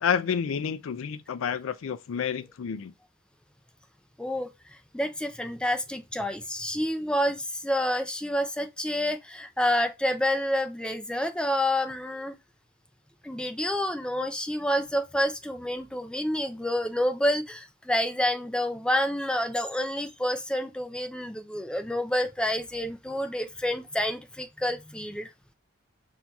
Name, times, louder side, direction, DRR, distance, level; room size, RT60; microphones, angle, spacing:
voice 1, 0.0-2.9, left 7 dB, 75° left, 0.4 m, -29 dB
voice 2, 4.2-12.4 13.2-25.3, left 1 dB, 5° left, 0.4 m, -28 dB
5.9 x 2.7 x 2.2 m
head